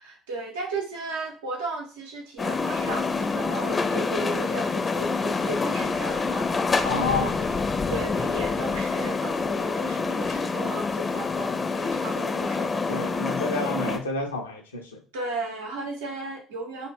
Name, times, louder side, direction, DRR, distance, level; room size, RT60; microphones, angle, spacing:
voice 1, 0.0-13.3 15.1-16.9, right 2 dB, 75° right, 1 dB, 0.6 m, -35 dB
sound 1, 2.4-14.0, left 4 dB, 30° left, 0.5 m, -27 dB
voice 2, 6.8-7.3 12.9-15.0, left 3 dB, 85° left, 2 dB, 0.5 m, -29 dB
2.2 x 2.1 x 3.4 m, 0.36 s
figure-of-eight pair, 55°, 0 cm